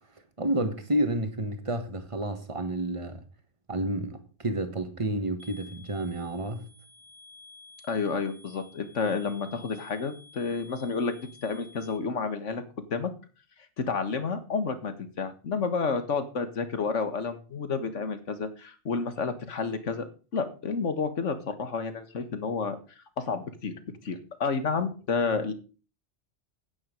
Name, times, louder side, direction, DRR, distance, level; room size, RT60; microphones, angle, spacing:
voice 1, 0.4-3.2 3.7-6.7, right 1 dB, 25° right, 1.5 m, -30 dB
sound 1, 5.4-12.0, left 3 dB, 80° right, 4.1 m, -53 dB
voice 2, 7.9-11.2 11.4-12.6 12.9-13.1 13.8-20.1 20.3-22.8 23.2-23.7 24.0-25.5, left 5 dB, 90° left, 1.8 m, -30 dB
9.6 x 9.4 x 5.2 m
omnidirectional pair, 1.2 m